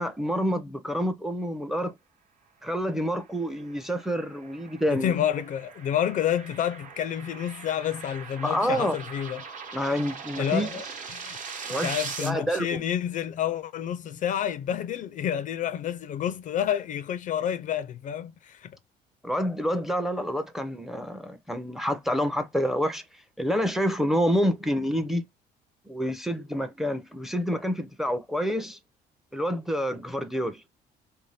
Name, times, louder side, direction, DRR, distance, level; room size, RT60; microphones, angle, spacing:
voice 1, 0.0-1.9 2.6-5.2 8.4-9.0 9.7-10.7 11.6-12.0 12.2-12.8 19.2-23.0 23.4-25.2 25.9-28.8 29.3-30.6, equal, ahead, 0.5 m, -28 dB
sound 1, 3.4-12.3, right 5 dB, 50° right, 1.0 m, -40 dB
voice 2, 4.9-9.4 10.4-11.4 11.7-18.7, left 10 dB, 50° left, 0.4 m, -29 dB
2.7 x 2.2 x 3.2 m
cardioid pair, 110°, 17 cm